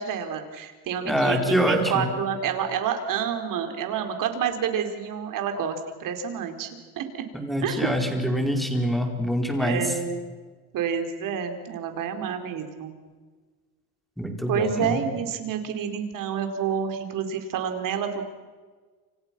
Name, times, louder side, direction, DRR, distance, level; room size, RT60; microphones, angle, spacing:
voice 1, 0.0-6.7 7.0-7.2 7.6-7.9 9.6-10.3 10.7-12.9 14.5-18.2, right 7 dB, 50° right, 6 dB, 4.3 m, -28 dB
voice 2, 1.0-2.1 7.3-9.9 14.2-15.0, equal, ahead, 3 dB, 4.3 m, -25 dB
29.5 x 28.0 x 6.1 m, 1.4 s
cardioid pair, 135°, 41 cm